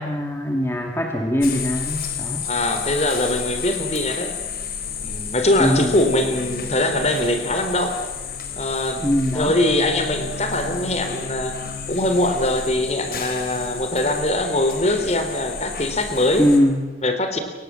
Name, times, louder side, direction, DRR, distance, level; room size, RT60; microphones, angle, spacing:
voice 1, 0.0-2.5 5.6-6.0 9.0-9.6 16.4-16.9, equal, 15° left, 2 dB, 2.3 m, -21 dB
sound 1, 1.4-16.6, left 6 dB, 55° left, 4.0 m, -31 dB
voice 2, 2.5-4.3 5.0-8.0 8.6-9.1 9.3-11.6 11.9-16.5 17.0-17.4, left 1 dB, 35° left, 7 dB, 3.7 m, -22 dB
29.5 x 23.0 x 7.7 m, 1.2 s
head